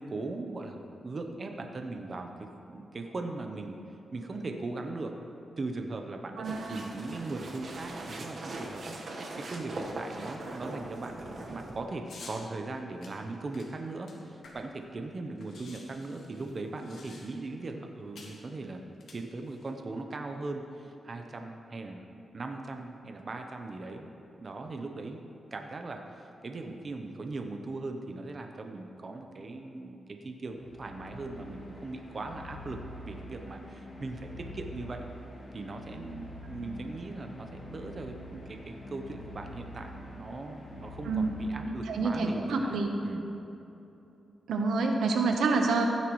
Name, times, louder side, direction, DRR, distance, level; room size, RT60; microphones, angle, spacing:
voice 1, 0.0-3.8 4.1-5.1 5.6-18.8 19.1-24.1 24.4-25.2 25.5-35.0 35.5-43.2, right 2 dB, 40° right, 4 dB, 0.8 m, -39 dB
sound 1, 6.4-11.8, right 2 dB, 55° right, 1.4 m, -41 dB
voice 2, 6.4-6.8 41.0-41.3 41.6-42.9 44.5-45.9, right 3 dB, 90° right, 3 dB, 1.1 m, -28 dB
sound 2, 12.1-12.4 13.0-14.8 15.1-15.2 15.4-17.5 18.2-18.4 18.9-19.7, left 3 dB, 75° left, 2.0 m, -51 dB
sound 3, 30.4-42.2, left 1 dB, 50° left, 2.5 m, -45 dB
15.0 x 10.0 x 3.2 m, 2.9 s
cardioid pair, 95°, 0 cm